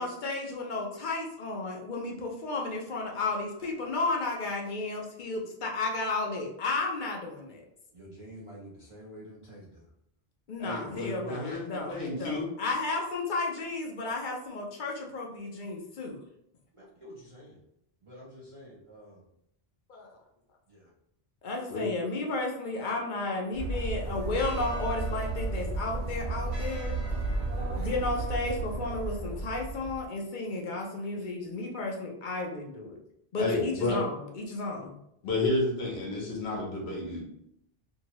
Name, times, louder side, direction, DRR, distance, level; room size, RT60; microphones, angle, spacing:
voice 1, 0.0-7.6 10.5-16.2 19.9-20.2 21.4-27.0 27.8-33.0 33.3-34.9, left 3 dB, 55° left, 0 dB, 0.7 m, -33 dB
voice 2, 7.9-9.9 16.7-17.6 18.0-19.2 20.7-20.9 23.9-24.5 27.6-28.0, equal, 40° right, -6 dB, 0.5 m, -48 dB
voice 3, 10.6-12.4 21.7-21.9 33.4-34.0 35.2-37.2, left 2 dB, 80° left, -2 dB, 1.1 m, -31 dB
sound 1, 23.5-30.1, right 2 dB, 85° right, 1.0 m, -33 dB
2.8 x 2.7 x 2.9 m, 0.74 s
omnidirectional pair, 1.1 m